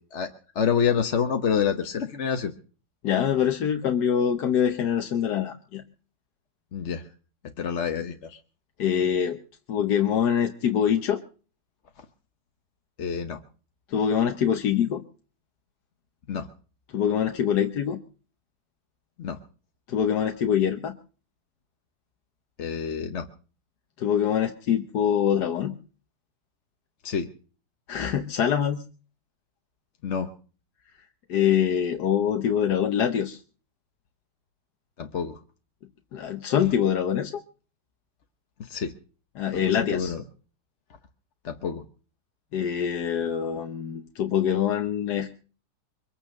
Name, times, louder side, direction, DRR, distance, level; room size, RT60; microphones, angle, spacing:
voice 1, 0.0-2.5 6.7-7.1 7.6-8.4 12.0-12.1 13.0-13.4 16.3-16.5 19.2-19.4 22.6-23.3 27.0-27.3 30.0-30.3 35.0-35.4 38.6-38.9 39.5-40.2 41.4-41.8, left 7 dB, 50° left, 5 dB, 1.2 m, -28 dB
voice 2, 3.0-5.8 8.8-9.4 9.7-11.2 13.9-15.0 16.9-18.0 19.9-20.9 24.0-25.7 27.9-28.8 31.3-33.4 36.1-37.4 39.4-40.1 42.5-45.4, left 8 dB, 70° left, 5 dB, 1.5 m, -24 dB
23.5 x 9.0 x 6.4 m, 0.41 s
omnidirectional pair, 1.8 m